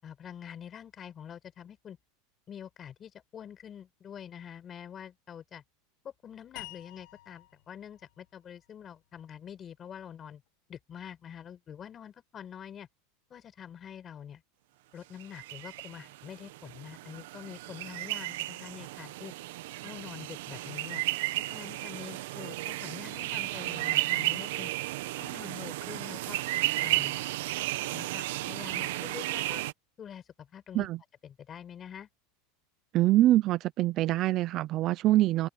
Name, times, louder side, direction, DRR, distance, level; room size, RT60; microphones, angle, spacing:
voice 1, 0.0-2.0 2.5-5.6 6.0-10.4 10.7-12.9 13.3-14.4 14.9-19.3 19.8-21.0 21.5-24.7 25.2-26.4 26.8-27.2 27.8-29.6 30.0-30.9 31.2-32.1, left 8 dB, 25° left, 6.8 m, -46 dB
sound 1, 6.6-9.7, left 21 dB, 65° left, 2.2 m, -51 dB
sound 2, 15.2-29.7, right 17 dB, 75° right, 1.4 m, -33 dB
voice 2, 32.9-35.5, right 15 dB, 40° right, 0.6 m, -24 dB
open air
supercardioid pair, 150°, 0 cm